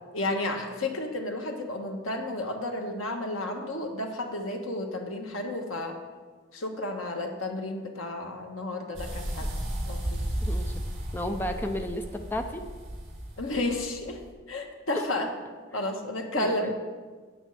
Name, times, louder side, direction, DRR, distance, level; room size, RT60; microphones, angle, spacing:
voice 1, 0.0-6.0 6.5-9.5 9.8-10.2 13.4-14.2 14.5-15.3 15.7-16.7, left 2 dB, 85° left, 3 dB, 1.4 m, -32 dB
sound 1, 8.9-14.3, equal, 30° right, 3.5 m, -34 dB
voice 2, 10.4-10.7 11.1-12.6 16.3-16.7, left 1 dB, 10° left, 5 dB, 0.5 m, -33 dB
8.5 x 6.4 x 7.7 m, 1.4 s
head